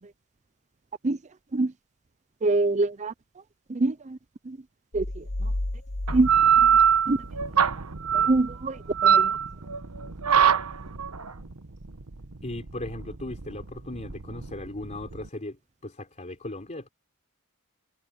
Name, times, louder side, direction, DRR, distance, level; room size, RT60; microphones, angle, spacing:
voice 1, 2.4-3.1 3.8-3.9 4.9-5.0 6.1-6.3 7.1-7.2 8.3-8.7 9.0-9.2, right 2 dB, 30° right, 0.6 m, -23 dB
sound 1, 4.9-7.6, left 1 dB, 65° left, 1.3 m, -33 dB
sound 2, 6.1-15.3, right 8 dB, 80° right, 1.2 m, -23 dB
voice 2, 12.4-15.6 15.8-16.9, left 1 dB, 35° left, 3.7 m, -37 dB
head